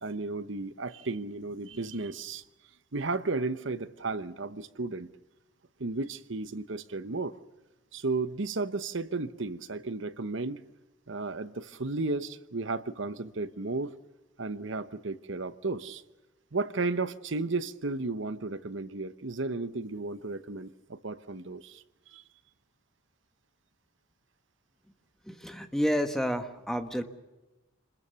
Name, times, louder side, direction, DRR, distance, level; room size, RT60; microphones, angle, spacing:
voice 1, 0.0-2.4 2.9-5.1 5.8-7.4 7.9-10.6 11.1-13.9 14.4-16.0 16.5-22.2, right 3 dB, 60° right, 1.0 m, -34 dB
voice 2, 25.2-27.0, equal, ahead, 1.4 m, -30 dB
27.5 x 21.0 x 6.9 m
head